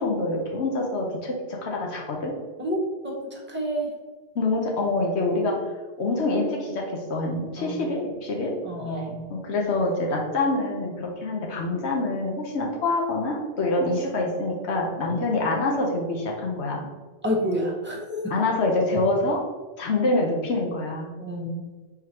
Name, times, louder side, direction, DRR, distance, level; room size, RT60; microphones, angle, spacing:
voice 1, 0.0-2.3 4.4-5.6 6.0-8.5 9.3-16.9 18.3-19.4 19.8-21.1, left 2 dB, 80° left, -1 dB, 1.0 m, -26 dB
voice 2, 2.6-3.9 7.6-8.0 8.6-9.2 15.0-15.2 17.2-18.3 21.2-21.6, equal, 10° right, -2 dB, 0.8 m, -29 dB
4.7 x 3.9 x 2.9 m, 1.3 s
omnidirectional pair, 1.1 m